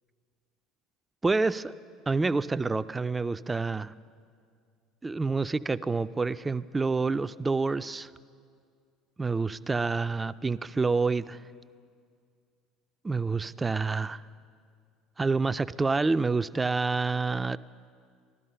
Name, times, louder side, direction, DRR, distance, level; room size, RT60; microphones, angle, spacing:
voice 1, 1.2-1.7 2.1-3.9 5.0-8.1 9.2-11.4 13.0-14.2 15.2-17.6, right 4 dB, 20° right, 14 dB, 0.4 m, -28 dB
15.0 x 12.5 x 5.6 m, 2.2 s
hypercardioid pair, 75°, 0 cm